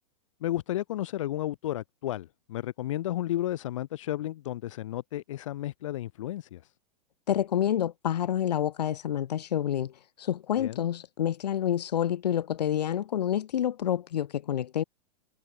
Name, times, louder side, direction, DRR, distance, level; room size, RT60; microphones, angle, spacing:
voice 1, 0.4-6.6 10.6-10.9, left 13 dB, 50° left, 5.2 m, -33 dB
voice 2, 7.3-14.8, left 10 dB, 80° left, 2.9 m, -28 dB
supercardioid pair, 180°, 21 cm